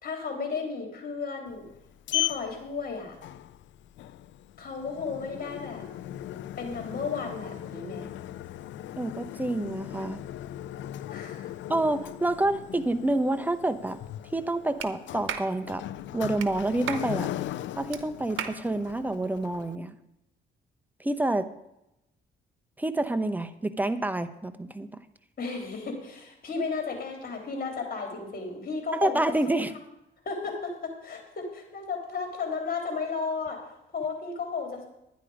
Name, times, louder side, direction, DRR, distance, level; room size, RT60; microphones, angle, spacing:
voice 1, 0.0-1.6 2.1-3.2 4.6-5.9 6.6-8.1 11.1-11.5 25.4-29.6 30.3-34.8, left 4 dB, 45° left, 2 dB, 3.5 m, -34 dB
Sliding door, 1.5-19.8, left 13 dB, 70° left, 0.5 m, -38 dB
voice 2, 9.0-10.2 11.7-14.0 14.3-15.8 16.1-17.3 17.8-20.0 21.0-21.5 22.8-24.9 29.0-29.7, right 2 dB, 10° right, 11 dB, 0.9 m, -28 dB
Clapping, 14.8-14.9 15.3-15.5 16.4-16.5 16.9-17.1 17.9-18.0 18.4-18.6, right 9 dB, 80° right, 1.0 m, -33 dB
11.5 x 10.0 x 5.0 m, 0.87 s
cardioid pair, 90°, 20 cm